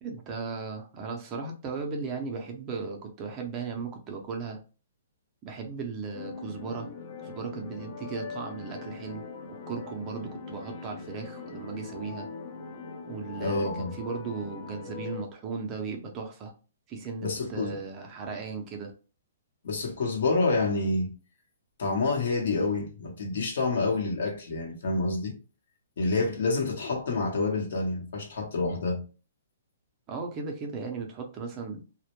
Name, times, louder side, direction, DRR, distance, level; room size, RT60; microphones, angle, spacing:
voice 1, 0.0-4.6 5.4-6.9 7.2-9.2 9.7-12.3 13.1-16.5 16.9-18.9 30.1-31.8, right 4 dB, 20° right, 0.5 m, -36 dB
sound 1, 6.1-15.3, left 5 dB, 40° left, 0.5 m, -41 dB
voice 2, 13.4-13.9 17.2-17.8 19.6-21.1 21.8-25.4 26.0-29.0, left 3 dB, 65° left, 0.8 m, -28 dB
2.1 x 2.1 x 2.9 m
hypercardioid pair, 160°, 0 cm